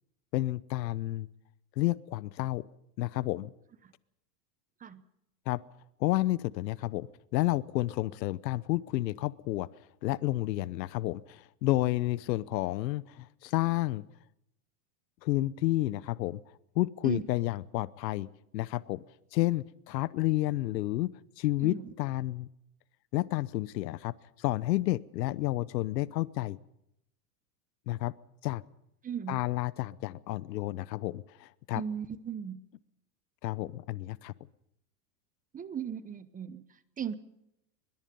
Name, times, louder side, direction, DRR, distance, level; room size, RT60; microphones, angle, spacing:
voice 1, 0.3-1.3 1.8-2.6 3.0-3.5 5.5-5.6 6.0-9.7 10.0-14.0 15.2-16.4 16.8-18.3 18.5-19.0 19.3-21.1 21.4-22.5 23.1-26.6 27.9-28.1 28.4-28.6 29.3-31.8 33.4-34.3, left 17 dB, 80° left, 19 dB, 0.9 m, -30 dB
voice 2, 29.0-29.4 31.7-32.6 35.5-36.6 37.0-37.1, right 8 dB, 15° right, 14 dB, 0.9 m, -36 dB
22.0 x 22.0 x 5.4 m, 0.81 s
supercardioid pair, 140°, 49 cm